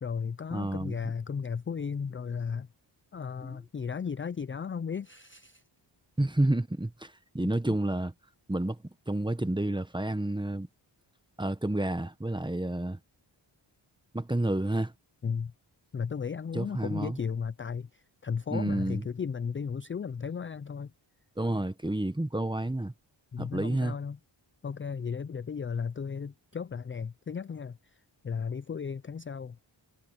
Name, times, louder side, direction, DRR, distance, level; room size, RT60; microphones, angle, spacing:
voice 1, 0.0-2.7 3.1-5.6 15.2-15.5 15.9-20.9 23.3-24.2 24.6-27.8 28.2-29.6, left 6 dB, 30° left, 0.3 m, -35 dB
voice 2, 0.5-1.0 3.4-3.6 6.2-8.1 8.5-10.7 11.4-13.0 14.1-14.9 16.5-17.2 18.5-19.0 21.4-22.9 23.4-24.0, right 1 dB, 10° right, 1.0 m, -30 dB
wide cardioid pair, 120°, 48 cm